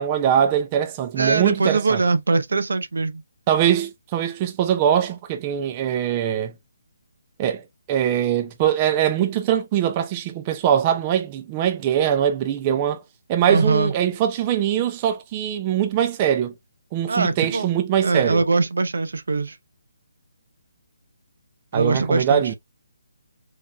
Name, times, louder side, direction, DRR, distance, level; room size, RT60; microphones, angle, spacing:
voice 1, 0.0-2.0 3.5-6.5 7.4-13.0 13.3-16.5 16.9-18.4 21.7-22.5, right 9 dB, 20° right, 0.4 m, -22 dB
voice 2, 1.2-3.2 13.5-13.9 17.1-17.7 18.0-19.6 21.7-22.5, right 3 dB, 80° right, 0.7 m, -22 dB
4.6 x 3.0 x 2.2 m
hypercardioid pair, 170°, 0 cm